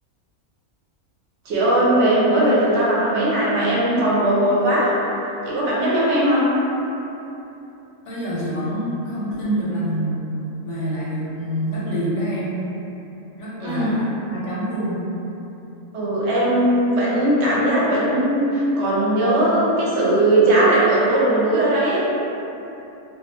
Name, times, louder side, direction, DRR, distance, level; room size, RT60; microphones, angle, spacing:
voice 1, 1.4-4.9 5.4-6.4 13.6-14.0 15.9-22.1, right 1 dB, 60° right, -7 dB, 0.8 m, -19 dB
voice 2, 8.1-12.6 13.4-15.1, right 1 dB, 65° left, -7 dB, 0.8 m, -26 dB
2.4 x 2.3 x 2.6 m, 2.9 s
omnidirectional pair, 1.5 m